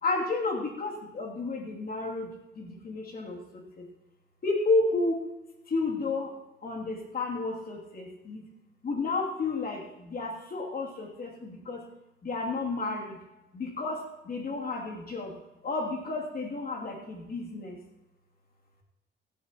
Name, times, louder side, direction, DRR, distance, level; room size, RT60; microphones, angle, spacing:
voice 1, 0.0-3.9 4.4-5.3 5.7-6.3 6.6-8.5 8.8-11.9 12.2-13.2 13.5-15.3 15.6-17.8, left 3 dB, 50° left, 0 dB, 2.8 m, -31 dB
16.0 x 13.5 x 3.0 m, 0.95 s
cardioid pair, 90°, 20 cm